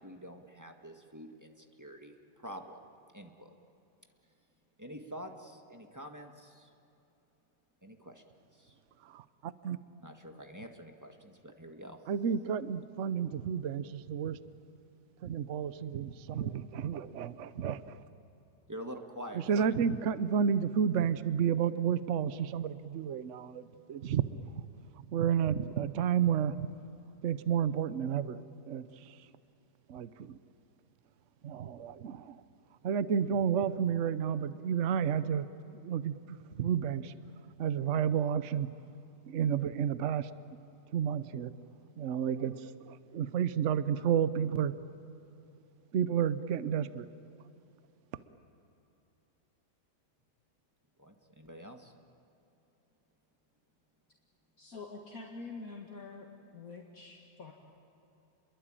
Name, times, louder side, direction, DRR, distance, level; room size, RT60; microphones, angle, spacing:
voice 1, 0.0-2.8 3.1-3.5 4.8-6.7 7.8-8.2 8.5-8.8 10.0-12.0 18.7-19.8 51.0-51.9, equal, 10° right, 4 dB, 1.7 m, -47 dB
voice 2, 9.0-9.8 12.1-14.4 15.2-18.0 19.5-24.7 25.0-26.7 27.2-28.4 28.7-29.2 29.9-30.4 31.4-32.4 32.8-35.4 35.8-36.1 36.6-37.1 37.6-38.7 39.3-40.3 40.9-41.5 42.0-44.7 45.9-47.1, right 8 dB, 55° right, 14 dB, 1.0 m, -31 dB
voice 3, 54.6-56.2 56.5-57.5, left 3 dB, 55° left, -1 dB, 2.4 m, -46 dB
29.5 x 22.0 x 8.9 m, 2.9 s
omnidirectional pair, 1.8 m